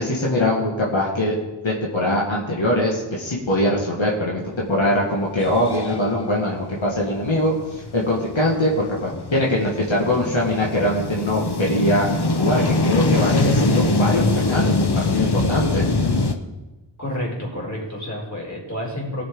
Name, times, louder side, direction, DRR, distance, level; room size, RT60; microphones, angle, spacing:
voice 1, 0.0-1.4 1.6-12.1 12.4-15.9, left 1 dB, 85° left, -3 dB, 2.0 m, -22 dB
sound 1, 4.8-4.9 5.3-16.3, left 2 dB, 55° left, 1.0 m, -23 dB
voice 2, 17.0-19.2, equal, 35° left, -3 dB, 3.8 m, -29 dB
18.0 x 6.3 x 4.7 m, 1.1 s
wide cardioid pair, 45°, 46 cm